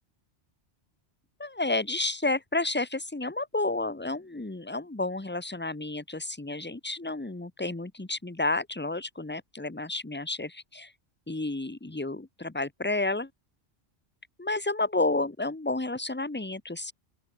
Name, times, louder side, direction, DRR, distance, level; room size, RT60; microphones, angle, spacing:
voice 1, 1.4-10.9 11.3-13.3 14.4-16.9, left 2 dB, 10° left, 1.0 m, -31 dB
open air
omnidirectional pair, 1.1 m